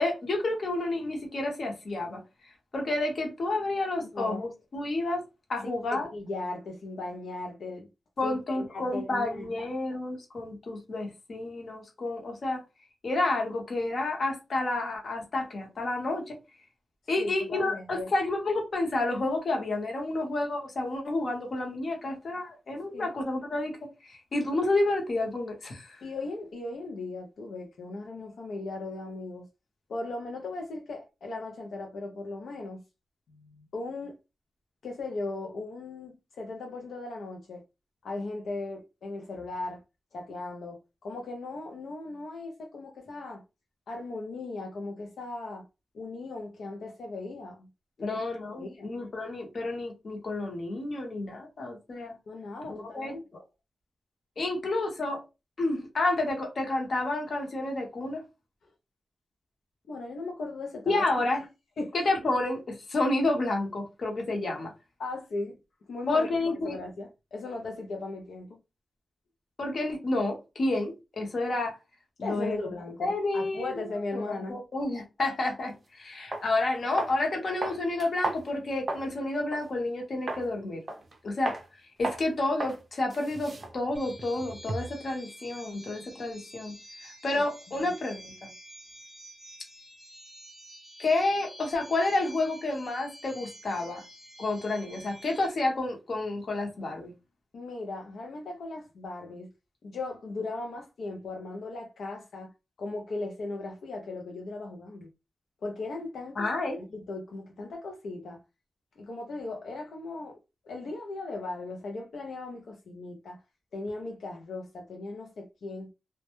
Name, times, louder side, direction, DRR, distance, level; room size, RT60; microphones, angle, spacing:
voice 1, 0.0-2.2 2.7-5.2 5.5-6.1 8.2-12.6 13.0-16.4 17.1-23.8 24.0-26.0 48.0-52.1 52.7-53.1 54.4-55.2 55.6-58.2 60.9-61.4 61.9-64.7 66.1-66.8 69.6-71.8 72.2-72.6 73.0-73.9 74.3-80.8 81.2-81.5 82.0-86.7 87.0-88.5 91.0-94.0 94.4-97.1 106.4-106.8, left 2 dB, 50° left, 0.8 m, -30 dB
voice 2, 4.0-4.4 5.6-7.9 8.2-9.7 17.2-18.1 22.9-23.1 26.0-29.5 29.9-32.8 33.3-34.2 34.8-37.6 38.0-39.8 40.1-43.4 43.9-45.7 45.9-47.7 48.0-48.2 48.5-48.9 52.3-53.2 59.9-61.1 61.8-61.9 65.0-65.6 65.9-68.6 72.2-74.6 87.3-87.4 87.8-87.9 97.5-99.5 99.8-102.5 102.8-105.1 105.6-106.5 106.9-108.4 109.0-110.4 110.6-113.4 113.7-115.9, left 2 dB, 80° left, 0.4 m, -38 dB
sound 1, 75.7-75.8 76.3-76.5 77.0-77.2 77.6-79.1 79.5-79.7 80.3-80.5 80.9-81.2 81.5-81.6 82.0-82.3 82.6-82.8 83.1-85.0, right 2 dB, 35° right, 0.4 m, -35 dB
sound 2, 83.9-95.5, equal, 5° right, 0.7 m, -49 dB
2.1 x 2.0 x 2.9 m
wide cardioid pair, 140°, 0 cm